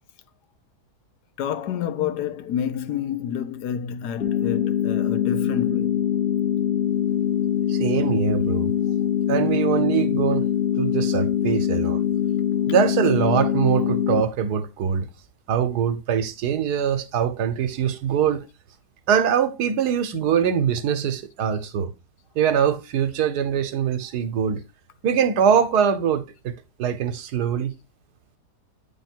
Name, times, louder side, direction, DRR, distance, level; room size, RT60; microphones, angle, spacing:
voice 1, 1.4-6.1, left 9 dB, 85° left, 1.3 m, -29 dB
sound 1, 4.2-14.2, left 10 dB, 50° left, 0.8 m, -23 dB
voice 2, 7.7-8.7 9.3-10.5 10.8-12.0 12.7-15.1 15.5-18.5 19.1-21.9 22.3-24.6 25.0-27.7, right 8 dB, 80° right, 1.3 m, -23 dB
8.9 x 3.5 x 4.4 m
omnidirectional pair, 1.7 m